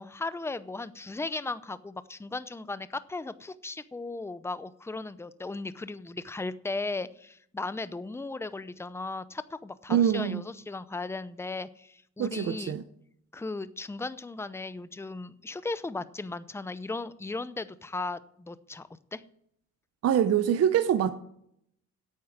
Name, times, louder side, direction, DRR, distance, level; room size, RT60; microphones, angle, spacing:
voice 1, 0.0-12.8 13.3-19.2, left 3 dB, 10° left, 0.6 m, -36 dB
voice 2, 9.9-10.4 12.2-12.8 20.0-21.1, right 9 dB, 55° right, 0.7 m, -24 dB
8.9 x 8.4 x 7.3 m
cardioid pair, 90°, 30 cm